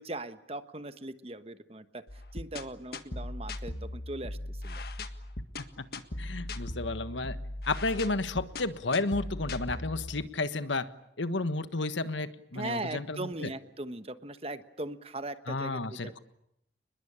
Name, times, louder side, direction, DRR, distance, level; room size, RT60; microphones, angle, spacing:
voice 1, 0.0-2.0 2.3-4.8 12.5-16.2, right 2 dB, 30° right, 11 dB, 1.2 m, -39 dB
sound 1, 2.1-10.3, left 1 dB, 55° left, 1.7 m, -39 dB
voice 2, 6.2-7.4 7.7-10.9 11.2-13.5 15.5-16.2, left 3 dB, 80° left, 12 dB, 1.4 m, -32 dB
29.5 x 21.0 x 8.8 m, 0.78 s
head